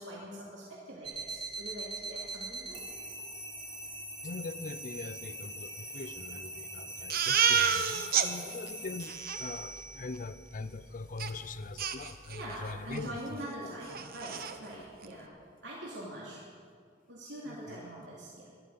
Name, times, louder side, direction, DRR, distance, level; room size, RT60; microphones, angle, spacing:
voice 1, 0.0-2.9 6.8-7.0 12.3-15.3 15.6-16.4 17.1-18.5, right 1 dB, 85° right, -6 dB, 2.7 m, -43 dB
sound 1, 1.0-13.1, right 2 dB, 25° right, 2.6 m, -43 dB
voice 2, 4.2-13.7 17.4-17.9, left 3 dB, 45° left, 14 dB, 0.5 m, -42 dB
Crying sobbing, 7.1-8.3 8.7-8.8 9.0-9.4 11.2-11.3 11.8-12.6 12.9-13.1 13.4-13.5 13.9-14.5, right 7 dB, 55° right, 0.9 m, -29 dB
13.5 x 12.0 x 7.7 m, 2.2 s
head